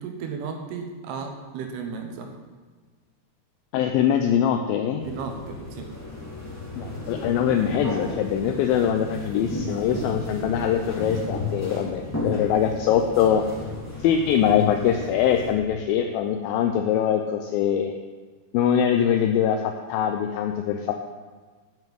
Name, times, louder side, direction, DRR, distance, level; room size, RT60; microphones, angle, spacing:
voice 1, 0.0-2.3 5.0-5.9, right 5 dB, 80° right, 4 dB, 3.1 m, -34 dB
voice 2, 3.7-5.1 6.8-13.4 14.0-17.9 18.5-20.9, left 9 dB, 80° left, 4 dB, 2.2 m, -23 dB
sound 1, 5.0-15.5, left 2 dB, 10° left, 1.1 m, -34 dB
7.8 x 7.2 x 7.8 m, 1.5 s
omnidirectional pair, 4.6 m